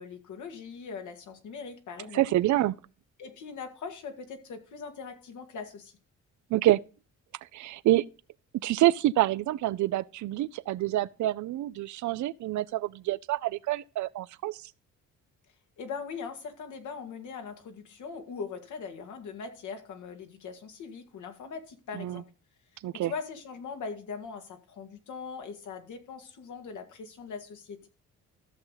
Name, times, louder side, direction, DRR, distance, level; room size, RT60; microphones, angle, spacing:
voice 1, 0.0-2.2 3.2-5.9 15.8-22.3 22.9-27.9, left 5 dB, 75° left, 2.1 m, -41 dB
voice 2, 2.1-2.8 6.5-6.8 7.5-8.1 8.6-14.6 21.9-22.2 22.8-23.1, right 15 dB, 75° right, 0.6 m, -27 dB
14.0 x 6.6 x 4.0 m
cardioid pair, 90°, 30 cm